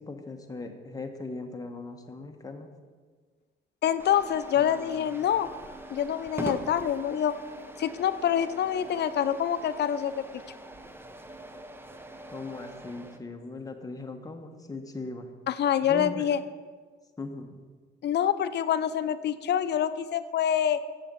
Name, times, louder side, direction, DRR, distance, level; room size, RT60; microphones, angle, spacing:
voice 1, 0.0-2.7 4.5-5.0 12.3-15.3 15.9-16.3 17.2-17.7, left 3 dB, 20° left, 4 dB, 1.1 m, -39 dB
voice 2, 3.8-5.5 5.9-7.3 7.8-10.2 15.5-16.4 18.0-20.8, left 9 dB, 60° left, 13 dB, 0.5 m, -26 dB
sound 1, 4.0-13.2, right 1 dB, 10° right, 0.7 m, -42 dB
7.2 x 6.9 x 6.8 m, 1.5 s
cardioid pair, 90°, 20 cm